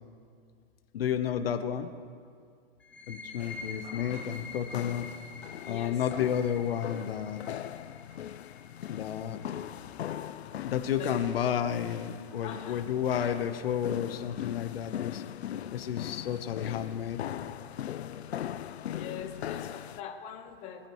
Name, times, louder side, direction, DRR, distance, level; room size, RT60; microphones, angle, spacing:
voice 1, 0.9-1.9 3.1-5.1 5.7-7.4 8.9-9.4 10.6-15.2 15.7-17.2, left 9 dB, 65° left, 8 dB, 1.0 m, -31 dB
sound 1, 2.8-10.2, left 4 dB, 5° left, 0.5 m, -47 dB
sound 2, 3.4-20.0, left 10 dB, 85° left, 0.6 m, -40 dB
voice 2, 5.6-6.0 11.0-11.3 12.4-12.9 18.9-20.9, left 8 dB, 20° left, 3 dB, 1.0 m, -42 dB
24.0 x 8.9 x 3.1 m, 2.2 s
hypercardioid pair, 155°, 31 cm